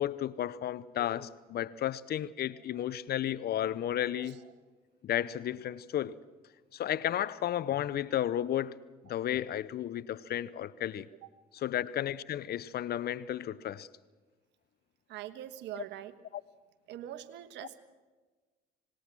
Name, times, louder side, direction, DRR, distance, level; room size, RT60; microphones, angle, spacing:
voice 1, 0.0-4.4 5.0-6.2 6.7-8.8 9.0-11.1 11.5-13.9, left 11 dB, 55° left, 0.8 m, -33 dB
voice 2, 15.1-16.1 16.9-17.8, right 12 dB, 70° right, 1.4 m, -43 dB
26.0 x 19.5 x 6.2 m
hypercardioid pair, 60°, 19 cm